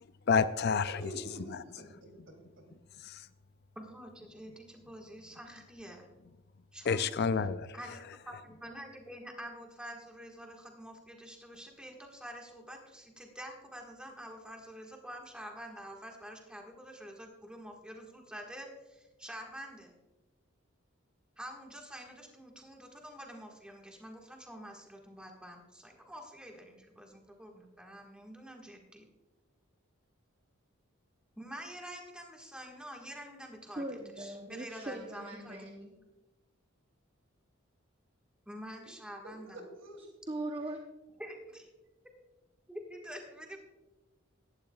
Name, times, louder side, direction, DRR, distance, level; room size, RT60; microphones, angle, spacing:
voice 1, 0.3-1.1 1.5-1.6 3.0-3.2 6.9-7.8, left 5 dB, 50° left, 0.4 m, -29 dB
voice 2, 0.9-2.6 39.2-40.0, right 1 dB, 65° right, 2.7 m, -47 dB
voice 3, 3.7-6.1 6.7-7.0 7.7-20.0 21.4-29.1 31.4-33.8 34.2-35.6 38.4-39.7 41.2-41.7 42.7-43.6, equal, 5° right, 1.5 m, -47 dB
voice 4, 33.8-36.0 40.0-40.8, right 1 dB, 25° right, 0.8 m, -40 dB
17.0 x 12.0 x 2.3 m
head